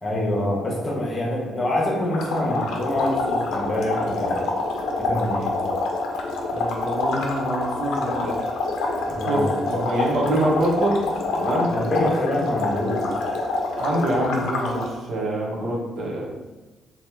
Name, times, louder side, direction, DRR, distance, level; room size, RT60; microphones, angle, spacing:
voice 1, 0.0-4.5 5.0-5.5 9.1-9.5 11.7-13.1, left 1 dB, 30° left, -4 dB, 1.0 m, -25 dB
sound 1, 2.1-14.9, left 3 dB, 80° left, 0.5 m, -26 dB
voice 2, 6.5-8.4 9.2-11.0 11.3-11.7 13.8-16.3, right 1 dB, 70° right, -4 dB, 0.9 m, -25 dB
2.9 x 2.3 x 3.4 m, 1.2 s
cardioid pair, 90°, 0 cm